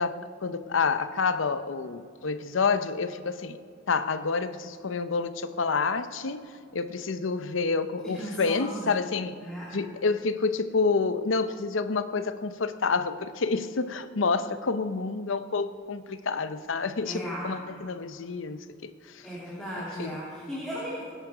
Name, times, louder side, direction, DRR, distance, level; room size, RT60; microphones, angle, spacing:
voice 1, 0.0-3.6 3.9-6.4 6.7-9.4 9.7-19.2 19.9-20.2, left 4 dB, 75° left, 12 dB, 0.7 m, -28 dB
voice 2, 8.1-9.0 9.4-9.7 17.0-17.6 19.2-21.0, equal, 5° left, -8 dB, 3.0 m, -36 dB
20.5 x 10.0 x 5.0 m, 2.2 s
head